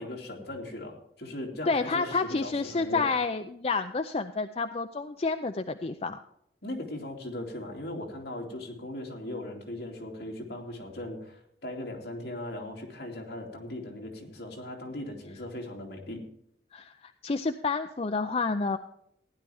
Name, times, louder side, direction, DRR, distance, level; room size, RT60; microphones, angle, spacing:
voice 1, 0.0-3.1 6.6-16.2, left 1 dB, 65° left, 0 dB, 2.7 m, -38 dB
voice 2, 1.7-6.2 16.7-18.8, left 4 dB, 35° left, 8 dB, 0.5 m, -29 dB
15.5 x 10.5 x 3.5 m, 0.75 s
head